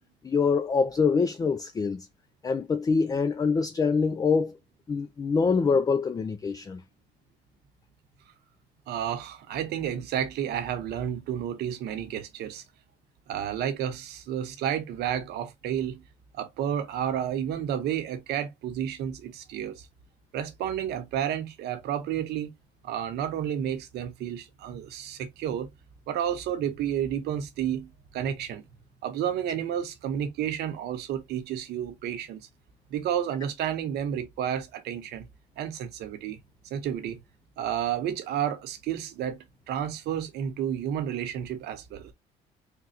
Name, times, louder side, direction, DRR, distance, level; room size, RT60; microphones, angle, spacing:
voice 1, 0.2-2.1 2.4-4.6 4.9-6.8, left 5 dB, 20° left, 0.4 m, -25 dB
voice 2, 8.9-12.6 13.3-16.0 16.3-19.9 20.3-22.5 22.8-25.7 26.1-28.6 29.0-32.4 32.9-35.3 35.6-36.4 36.6-37.2 37.6-39.4 39.7-42.1, right 9 dB, 75° right, 1.0 m, -31 dB
3.8 x 2.3 x 4.2 m
cardioid pair, 110°, 17 cm